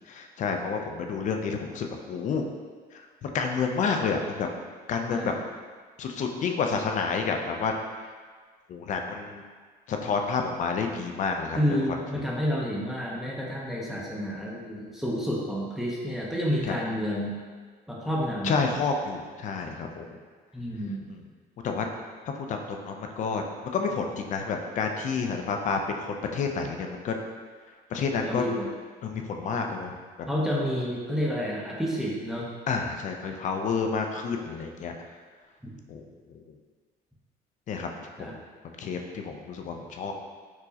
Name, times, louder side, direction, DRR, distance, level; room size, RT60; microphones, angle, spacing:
voice 1, 0.1-2.4 3.2-4.5 4.9-5.3 6.0-7.7 8.7-9.4 9.9-11.6 16.6-16.8 18.4-20.1 21.1-21.2 21.6-21.8 22.5-23.4 23.7-27.1 27.9-28.4 29.0-29.9 32.7-34.9 35.9-36.0 37.7-37.9 38.2-38.3 38.8-40.1, left 5 dB, 45° left, 3 dB, 0.4 m, -29 dB
voice 2, 11.5-17.3 17.9-18.7 20.5-21.1 28.3-28.7 30.3-32.5 38.2-38.3, equal, ahead, -4 dB, 0.6 m, -29 dB
4.5 x 2.0 x 2.7 m, 1.6 s
cardioid pair, 110°, 17 cm